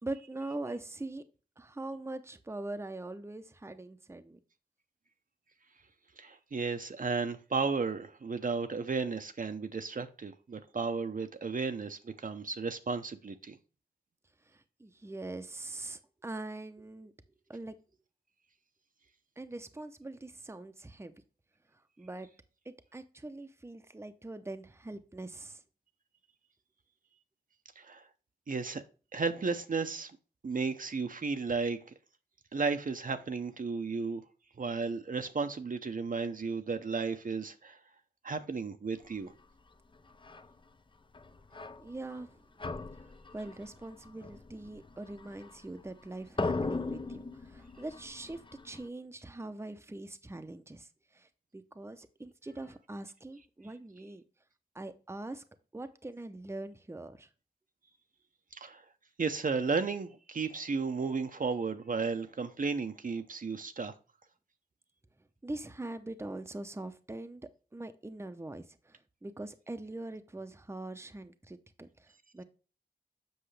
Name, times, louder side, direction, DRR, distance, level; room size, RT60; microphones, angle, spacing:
voice 1, 0.0-1.2 1.6-4.4 14.5-17.1 17.5-17.7 19.4-21.1 22.0-22.3 22.7-25.6 41.8-42.4 43.3-54.2 54.7-55.4 55.7-57.3 65.4-67.4 67.7-72.4, right 2 dB, 15° right, 0.7 m, -42 dB
voice 2, 6.2-13.6 27.8-28.1 28.5-28.8 29.1-30.1 30.4-31.9 32.5-34.2 34.6-37.8 38.2-39.3 58.5-58.8 59.2-63.9, right 4 dB, 55° right, 0.7 m, -34 dB
sound 1, 40.1-40.5 41.1-42.3 42.6-46.0 46.3-48.9, left 3 dB, 30° left, 0.5 m, -39 dB
7.9 x 6.0 x 3.3 m
wide cardioid pair, 95°, 17 cm